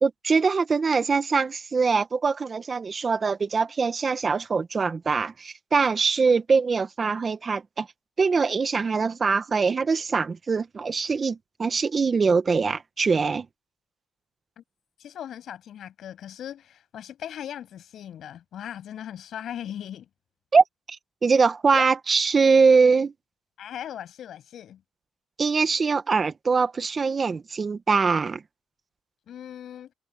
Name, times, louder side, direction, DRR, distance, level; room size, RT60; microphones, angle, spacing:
voice 1, 0.0-7.9 8.2-13.5 20.5-21.0 21.2-23.1 25.4-28.4, right 5 dB, 35° right, 1.6 m, -23 dB
voice 2, 15.0-20.1 21.7-21.9 23.6-24.8 29.3-29.9, left 10 dB, 70° left, 7.4 m, -38 dB
cardioid pair, 90°, 0 cm